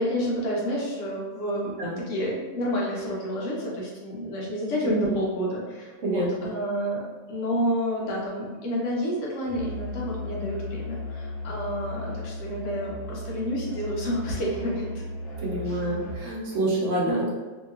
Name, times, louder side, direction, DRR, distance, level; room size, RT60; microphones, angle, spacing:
voice 1, 0.0-15.0 15.7-15.8 17.1-17.3, equal, 65° left, -4 dB, 1.1 m, -30 dB
Musical instrument, 9.5-16.4, left 1 dB, 80° left, 1.2 m, -35 dB
voice 2, 15.4-17.3, right 2 dB, 60° right, -5 dB, 1.1 m, -27 dB
3.0 x 2.8 x 2.4 m, 1.3 s
omnidirectional pair, 1.5 m